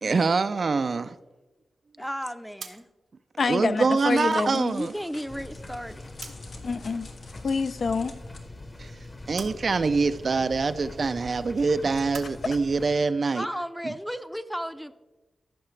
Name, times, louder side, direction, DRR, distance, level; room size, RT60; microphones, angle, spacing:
voice 1, 0.0-1.2 3.5-4.9 8.8-8.9 9.3-13.5, right 4 dB, 55° right, 0.4 m, -25 dB
voice 2, 2.0-2.9 4.5-6.1 13.3-14.9, equal, ahead, 0.5 m, -34 dB
sound 1, 2.6-6.7 6.9-8.0 8.4-12.3, right 5 dB, 90° right, 0.9 m, -47 dB
voice 3, 3.4-4.7 6.6-7.1 7.4-8.1, left 4 dB, 60° left, 0.4 m, -27 dB
Crackle, 3.6-8.4, left 3 dB, 85° left, 1.4 m, -50 dB
sound 2, 5.3-13.0, left 2 dB, 25° left, 0.9 m, -43 dB
14.5 x 5.8 x 3.2 m
cardioid pair, 80°, 0 cm